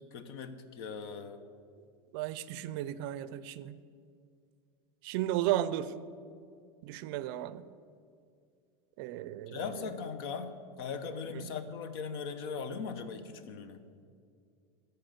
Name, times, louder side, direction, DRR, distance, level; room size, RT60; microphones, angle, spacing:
voice 1, 0.0-1.4 9.5-13.8, left 5 dB, 70° left, 10 dB, 0.9 m, -39 dB
voice 2, 2.1-3.8 5.0-5.9 6.8-7.7 9.0-9.9 11.3-11.5, right 13 dB, 60° right, 15 dB, 0.4 m, -34 dB
13.5 x 4.6 x 7.7 m, 2.3 s
supercardioid pair, 165°, 13 cm